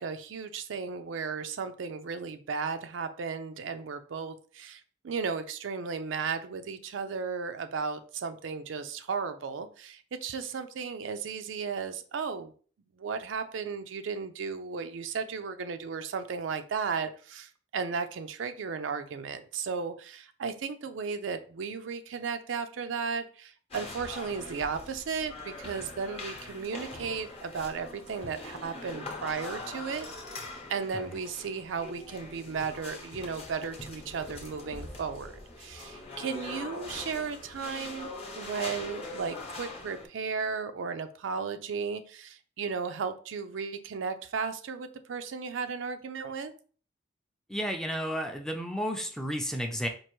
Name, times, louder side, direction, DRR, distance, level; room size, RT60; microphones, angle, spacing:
voice 1, 0.0-12.5 13.0-30.1 30.7-35.3 35.6-46.5, right 5 dB, 85° right, 9 dB, 0.4 m, -35 dB
sound 1, 23.7-40.1, left 2 dB, 30° left, 0.8 m, -43 dB
voice 2, 47.5-49.9, equal, 5° left, 4 dB, 0.4 m, -32 dB
4.5 x 2.5 x 3.0 m, 0.41 s
head